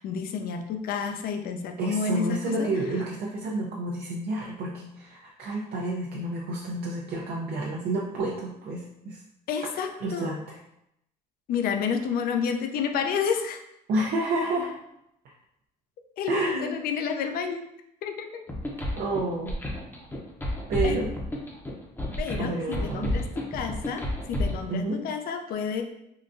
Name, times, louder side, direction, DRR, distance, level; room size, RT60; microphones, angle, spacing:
voice 1, 0.0-2.7 9.5-10.3 11.5-13.6 16.2-17.6 18.0-18.4 20.8-21.0 22.2-24.0 24.3-25.8, left 6 dB, 60° left, 6 dB, 0.4 m, -30 dB
voice 2, 1.8-9.2 10.0-10.6 13.9-14.7 15.2-15.3 16.3-16.7 18.9-19.5 20.7-21.1 22.3-23.1 24.7-25.0, right 2 dB, 65° right, -3 dB, 0.5 m, -30 dB
sound 1, 18.5-24.6, left 1 dB, 10° left, 0.6 m, -30 dB
3.7 x 2.2 x 2.5 m, 0.81 s
cardioid pair, 110°, 17 cm